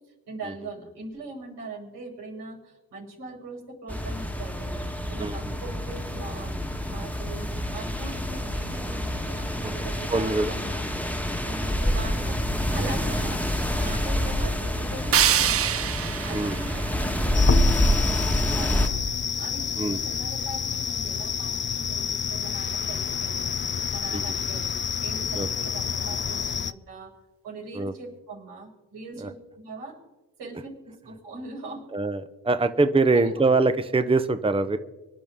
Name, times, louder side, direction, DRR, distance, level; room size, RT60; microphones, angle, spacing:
voice 1, 0.3-10.9 11.4-12.4 12.7-15.8 16.2-19.0 19.4-23.5 23.9-24.7 25.0-27.1 27.4-30.0 30.4-31.9 33.1-33.4, right 3 dB, 90° right, -2 dB, 5.8 m, -41 dB
sound 1, 3.9-18.9, equal, 5° left, 1.4 m, -27 dB
voice 2, 5.2-5.5 10.1-10.5 16.3-16.6 19.8-20.0 24.1-24.3 25.3-25.5 27.7-27.9 29.2-29.3 31.9-34.8, right 3 dB, 15° right, 10 dB, 0.8 m, -23 dB
sound 2, 15.1-18.1, right 10 dB, 35° right, 0.4 m, -26 dB
sound 3, 17.3-26.7, left 7 dB, 30° left, 0.5 m, -29 dB
24.5 x 11.0 x 3.6 m, 1.1 s
supercardioid pair, 55°, 40 cm